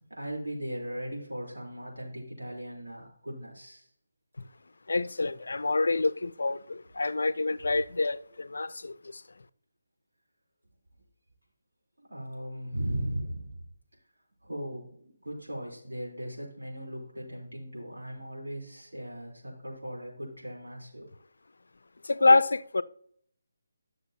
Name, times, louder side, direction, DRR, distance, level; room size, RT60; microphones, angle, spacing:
voice 1, 0.1-3.9 7.0-7.1 12.0-13.7 14.4-21.1, equal, 80° right, 3.6 m, -38 dB
voice 2, 4.9-9.2 22.0-22.8, left 3 dB, 70° left, 0.4 m, -26 dB
11.5 x 6.5 x 2.8 m
figure-of-eight pair, 150°, 0 cm